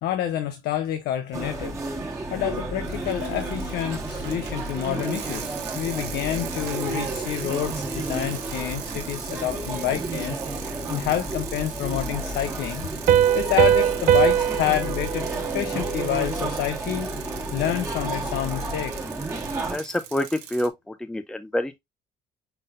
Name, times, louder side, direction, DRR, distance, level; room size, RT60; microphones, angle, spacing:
voice 1, 0.0-12.9 13.3-15.3 15.5-17.1 17.5-18.9, left 11 dB, 75° left, 0.6 m, -28 dB
sound 1, 1.3-19.8, right 2 dB, 15° right, 1.7 m, -31 dB
Bicycle, 2.8-20.7, right 9 dB, 80° right, 1.1 m, -40 dB
Piano, 13.1-16.5, right 10 dB, 60° right, 0.5 m, -22 dB
voice 2, 19.7-21.8, left 1 dB, 5° left, 0.5 m, -27 dB
5.7 x 3.7 x 2.5 m
cardioid pair, 110°, 17 cm